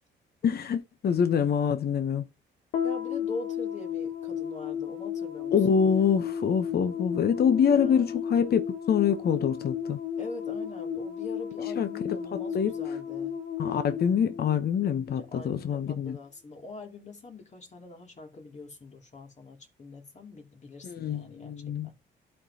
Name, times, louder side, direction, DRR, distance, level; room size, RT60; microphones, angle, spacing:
voice 1, 0.4-2.3 5.5-8.6 8.9-10.0 11.8-12.2 12.5-12.7 13.6-16.2 20.8-22.0, left 7 dB, 50° left, 0.8 m, -25 dB
sound 1, 2.7-15.2, left 8 dB, 80° left, 1.2 m, -34 dB
voice 2, 2.8-5.8 7.6-8.3 10.2-13.3 15.0-22.0, left 3 dB, 35° left, 2.6 m, -43 dB
12.5 x 4.4 x 2.8 m
cardioid pair, 90°, 20 cm